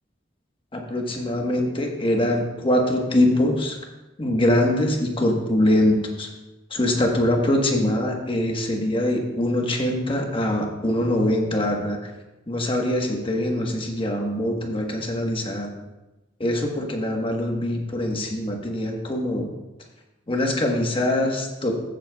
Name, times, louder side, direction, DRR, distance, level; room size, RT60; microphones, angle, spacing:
voice 1, 0.7-3.8 4.2-6.3 6.7-12.0 12.5-15.7 16.4-19.5 20.3-21.7, left 1 dB, 30° left, 1 dB, 1.3 m, -23 dB
14.0 x 7.7 x 2.3 m, 1.1 s
head